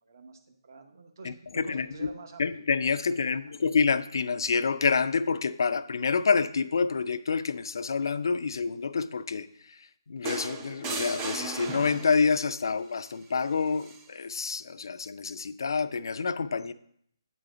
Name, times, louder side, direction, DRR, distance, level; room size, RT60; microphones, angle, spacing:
voice 1, 0.0-1.4 1.6-2.5 3.2-3.4, right 4 dB, 50° right, 0.9 m, -47 dB
voice 2, 1.2-2.1 2.4-9.8 10.1-16.7, left 5 dB, 65° left, 0.4 m, -28 dB
sound 1, 10.3-12.4 13.8-14.0, right 4 dB, 15° right, 0.4 m, -36 dB
9.0 x 3.9 x 4.9 m
hypercardioid pair, 170°, 2 cm